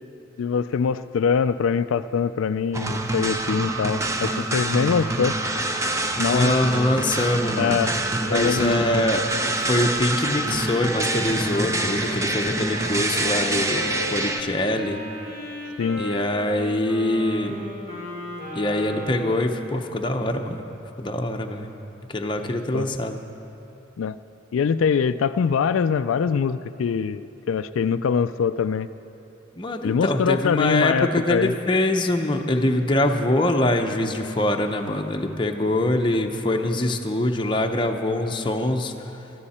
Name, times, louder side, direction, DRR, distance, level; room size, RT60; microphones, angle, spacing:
voice 1, 0.4-5.3 6.2-6.5 7.6-8.0 8.3-9.1 15.8-16.0 22.7-22.9 24.0-24.2 24.5-28.9 29.8-31.5, left 6 dB, 85° left, 12 dB, 0.3 m, -23 dB
sound 1, 2.7-14.4, right 2 dB, 15° right, 0.6 m, -26 dB
voice 2, 6.2-7.9 8.3-9.2 9.7-15.0 16.0-17.5 18.5-20.6 21.0-21.7 22.1-23.2 29.6-39.3, left 1 dB, 25° left, 3 dB, 0.8 m, -24 dB
Wind instrument woodwind instrument, 10.8-19.4, equal, 50° right, 3.2 m, -35 dB
20.0 x 14.0 x 4.3 m, 3.0 s
head